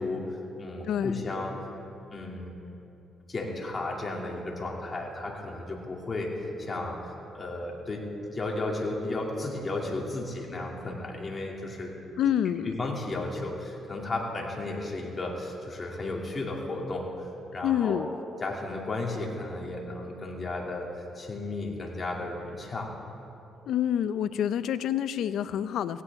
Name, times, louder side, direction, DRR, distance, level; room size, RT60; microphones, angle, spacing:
voice 1, 0.0-1.5 2.1-2.6 3.3-12.0 12.2-12.4 12.6-18.1 18.4-22.9, left 2 dB, 35° left, -1 dB, 2.6 m, -34 dB
voice 2, 0.9-1.3 12.2-12.7 17.6-18.1 23.7-26.0, left 10 dB, 75° left, 14 dB, 0.5 m, -27 dB
17.5 x 16.0 x 3.6 m, 2.8 s
cardioid pair, 90°, 0 cm